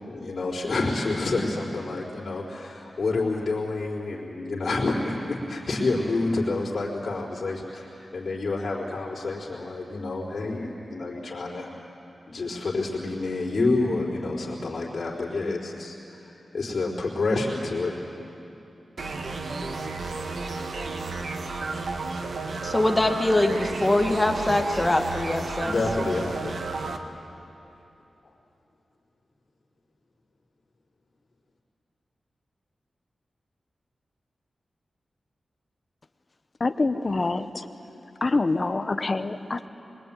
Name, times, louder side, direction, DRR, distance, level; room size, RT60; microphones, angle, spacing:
voice 1, 0.0-11.7 12.3-17.9 25.6-26.6, left 3 dB, 50° left, -7 dB, 4.1 m, -28 dB
sound 1, 19.0-27.0, right 3 dB, 65° right, 1.5 m, -32 dB
voice 2, 22.6-25.7, left 1 dB, 15° left, 4 dB, 1.5 m, -23 dB
voice 3, 36.6-37.7 38.2-39.7, left 3 dB, 30° left, 9 dB, 0.8 m, -26 dB
24.5 x 22.5 x 9.1 m, 2.9 s
wide cardioid pair, 175°, 0 cm